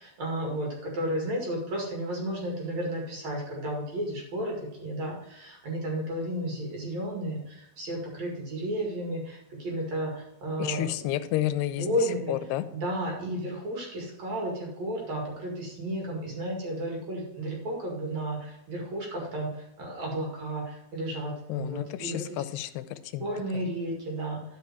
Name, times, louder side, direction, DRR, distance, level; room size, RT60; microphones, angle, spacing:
voice 1, 0.0-11.1 11.7-12.3 12.7-22.4 23.2-24.4, right 1 dB, 50° right, -1 dB, 3.0 m, -33 dB
voice 2, 10.6-11.9 12.3-12.6 21.5-23.3 23.5-23.6, left 14 dB, 90° left, 12 dB, 2.6 m, -31 dB
11.5 x 5.5 x 4.6 m, 0.85 s
omnidirectional pair, 4.6 m